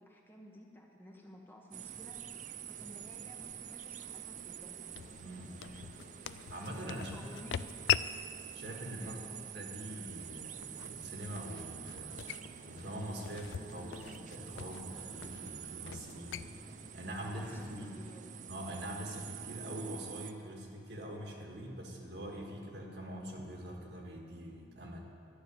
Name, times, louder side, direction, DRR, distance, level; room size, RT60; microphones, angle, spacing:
voice 1, 0.0-2.2 2.6-4.9 6.9-7.8 9.0-9.4 17.2-18.3, left 1 dB, 10° left, -1 dB, 1.0 m, -53 dB
sound 1, 1.7-20.3, right 9 dB, 40° right, 0.4 m, -47 dB
sound 2, 1.8-17.9, left 10 dB, 70° left, 0.3 m, -43 dB
voice 2, 5.2-5.5 6.5-7.2 8.5-9.2 9.5-12.3 12.6-16.4 16.9-17.9 18.5-25.0, right 1 dB, 55° right, 0 dB, 1.8 m, -44 dB
Keyboard (musical), 10.4-18.8, equal, 40° left, 1.1 m, -58 dB
12.0 x 6.8 x 9.6 m, 2.6 s
head